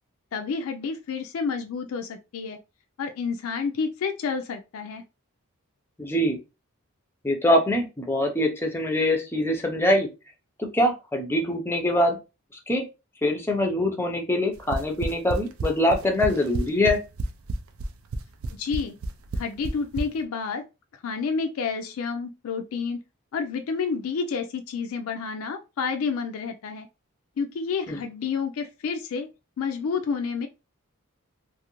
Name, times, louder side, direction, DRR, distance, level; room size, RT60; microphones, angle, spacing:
voice 1, 0.3-2.6 3.0-5.0 18.5-18.9 19.4-20.6 21.0-23.0 23.3-26.9 27.4-29.3 29.6-30.5, left 5 dB, 75° left, 5 dB, 0.4 m, -29 dB
voice 2, 6.0-6.4 7.2-10.1 10.7-12.2 12.7-12.8 13.2-17.0 27.9-28.0, left 1 dB, 10° left, 3 dB, 0.5 m, -23 dB
sound 1, 14.5-20.1, right 2 dB, 70° right, 0.4 m, -30 dB
2.5 x 2.4 x 2.9 m, 0.27 s
head